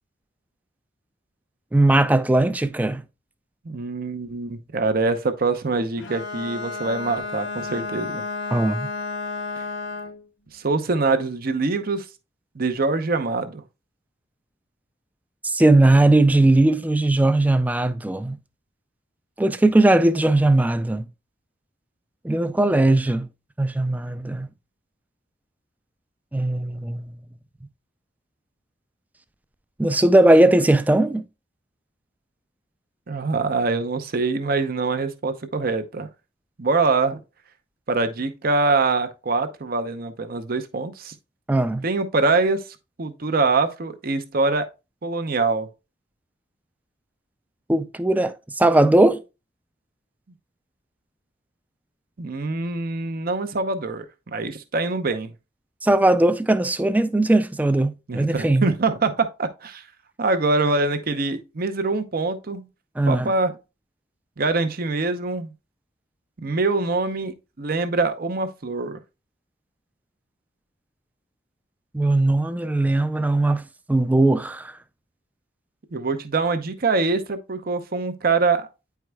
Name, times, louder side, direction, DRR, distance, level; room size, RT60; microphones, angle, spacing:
voice 1, 1.7-3.0 8.5-8.9 15.4-18.4 19.4-21.1 22.2-23.3 23.6-24.5 26.3-27.1 29.8-31.2 41.5-41.9 47.7-49.2 55.8-58.7 63.0-63.3 71.9-73.6 73.9-74.7, right 2 dB, 10° right, 0.3 m, -19 dB
voice 2, 3.6-8.2 9.6-9.7 10.5-12.1 12.5-13.6 33.1-36.1 36.6-37.2 37.9-41.1 41.8-44.7 45.0-45.7 52.2-55.3 58.1-59.8 60.2-62.7 63.1-63.5 64.4-65.5 66.4-69.0 75.9-78.7, right 3 dB, 50° right, 0.7 m, -24 dB
Bowed string instrument, 6.0-10.2, left 3 dB, 85° left, 0.7 m, -32 dB
9.4 x 4.6 x 2.3 m
head